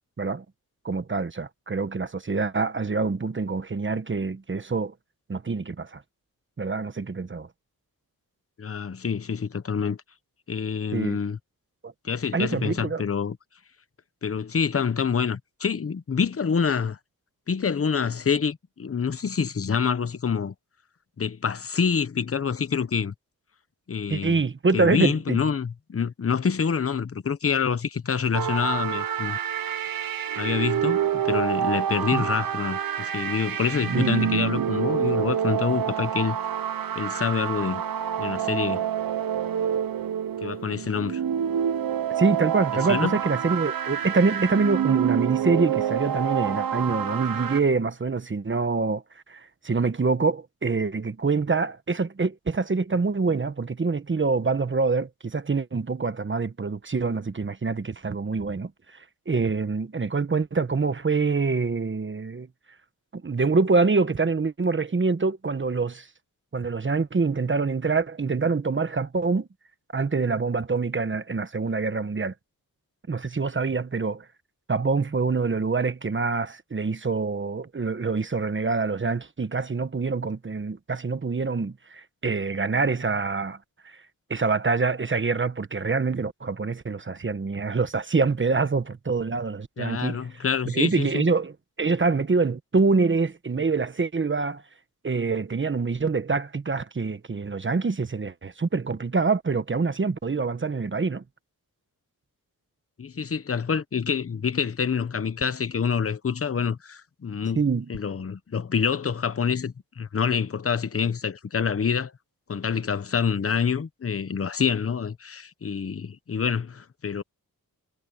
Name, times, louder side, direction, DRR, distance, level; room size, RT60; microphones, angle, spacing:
voice 1, 0.8-4.9 5.3-6.0 6.6-7.5 10.9-11.2 11.8-11.9 12.3-13.0 24.1-25.4 32.1-32.2 33.9-34.1 34.6-34.7 42.2-49.0 49.3-58.7 59.3-62.5 63.1-66.1 66.5-69.5 69.9-72.3 73.1-74.2 74.7-83.6 83.8-84.0 84.3-90.2 90.7-91.5 91.8-94.6 95.0-101.2 107.6-107.9, right 4 dB, 35° right, 1.2 m, -25 dB
voice 2, 8.6-10.0 10.5-11.4 12.0-13.4 14.2-17.0 17.5-20.5 21.2-23.1 23.9-24.4 24.7-29.4 30.3-36.4 37.0-37.8 38.2-38.9 40.4-41.2 42.9-43.2 89.8-91.2 103.0-107.6 107.9-112.1 112.5-117.2, left 6 dB, 40° left, 1.0 m, -26 dB
sound 1, 28.3-47.6, right 9 dB, 70° right, 0.9 m, -27 dB
wide cardioid pair, 125°, 36 cm